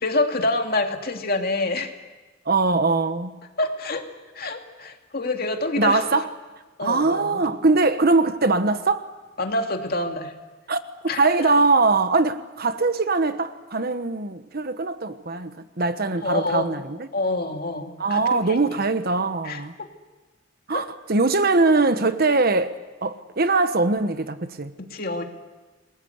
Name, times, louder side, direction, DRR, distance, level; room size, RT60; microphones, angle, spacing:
voice 1, 0.0-1.9 3.6-4.1 4.3-6.2 6.8-7.4 9.4-10.3 11.1-11.5 16.2-16.8 17.1-18.6 19.4-19.6 20.7-20.8 24.9-25.2, left 2 dB, 50° left, 2.5 m, -27 dB
voice 2, 2.5-3.4 5.8-6.3 6.8-9.0 10.7-10.8 11.2-17.1 18.0-19.8 20.7-24.7, right 3 dB, 50° right, 1.2 m, -22 dB
28.5 x 21.0 x 8.1 m
head